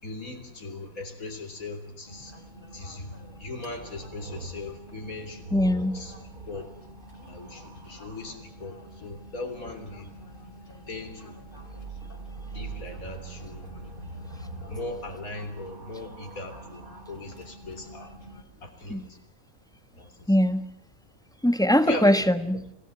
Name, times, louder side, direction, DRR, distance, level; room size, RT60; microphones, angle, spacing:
voice 1, 0.0-2.4 2.7-5.4 5.9-6.1 6.5-6.7 7.3-10.2 10.9-11.4 12.5-13.9 14.7-18.1 18.6-19.2 19.9-20.3 21.9-22.4, left 2 dB, 75° left, 6 dB, 3.9 m, -38 dB
sound 1, 2.1-18.4, equal, 35° left, 3.5 m, -48 dB
sound 2, 3.8-8.4 11.4-17.5 18.5-19.1, right 2 dB, 90° right, 2.1 m, -43 dB
voice 2, 5.5-6.0 18.9-19.0 20.3-20.7 21.4-22.6, equal, 5° left, 10 dB, 1.1 m, -21 dB
26.5 x 17.5 x 7.9 m, 0.74 s
omnidirectional pair, 1.5 m